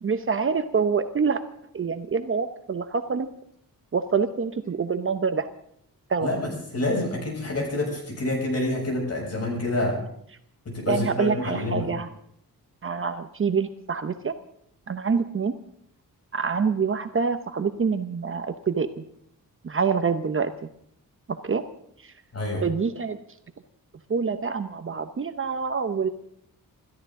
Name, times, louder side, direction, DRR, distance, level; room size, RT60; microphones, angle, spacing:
voice 1, 0.0-1.4 1.7-3.3 3.9-5.5 6.1-6.3 10.9-12.1 12.8-14.3 14.9-15.5 16.3-19.0 19.6-20.5 21.4-21.6 22.0-22.1 22.6-23.2 24.1-26.1, right 5 dB, 35° right, 9 dB, 0.9 m, -26 dB
voice 2, 6.2-10.0 10.6-11.9 22.3-22.6, left 1 dB, 45° left, 0 dB, 6.8 m, -27 dB
27.5 x 13.5 x 3.8 m, 0.68 s
wide cardioid pair, 170°, 35 cm